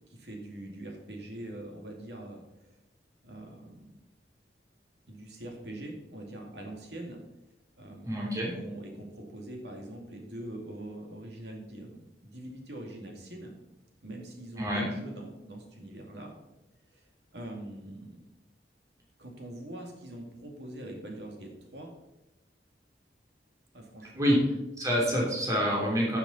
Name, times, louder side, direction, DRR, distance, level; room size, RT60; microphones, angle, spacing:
voice 1, 0.1-2.8 3.2-4.0 5.1-7.2 7.8-13.5 14.0-16.3 16.9-17.0 17.3-18.2 19.2-21.9 23.7-24.4, right 1 dB, 70° right, 1 dB, 2.4 m, -43 dB
voice 2, 8.0-8.5 14.6-14.9 24.2-24.4 24.8-26.2, equal, 20° right, -4 dB, 3.0 m, -27 dB
12.5 x 6.9 x 4.3 m, 0.95 s
head